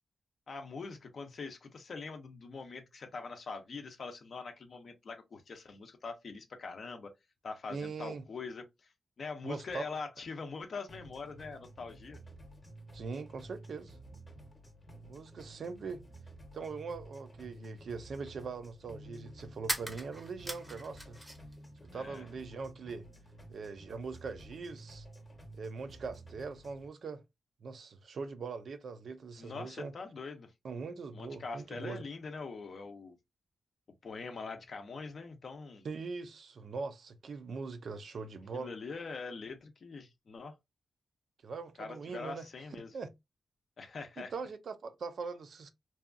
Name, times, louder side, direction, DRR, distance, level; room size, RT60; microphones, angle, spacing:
voice 1, 0.5-7.1 7.4-8.9 9.2-12.2 21.9-22.2 29.4-30.5 31.1-33.2 34.0-35.9 38.5-40.6 41.8-42.9 43.8-44.3, left 4 dB, 55° left, 0.5 m, -43 dB
voice 2, 7.7-8.2 9.4-9.8 12.9-14.0 15.0-16.0 16.5-21.2 21.9-23.1 23.5-25.1 25.5-27.2 27.6-29.9 30.6-32.0 35.8-38.7 41.4-42.5 42.9-43.1 44.2-45.7, right 4 dB, 60° right, 0.4 m, -41 dB
sound 1, 10.9-26.9, right 1 dB, 20° left, 0.8 m, -52 dB
sound 2, 19.7-21.6 21.8-22.7, equal, 10° right, 0.6 m, -40 dB
2.7 x 2.2 x 2.4 m
wide cardioid pair, 120°, 0 cm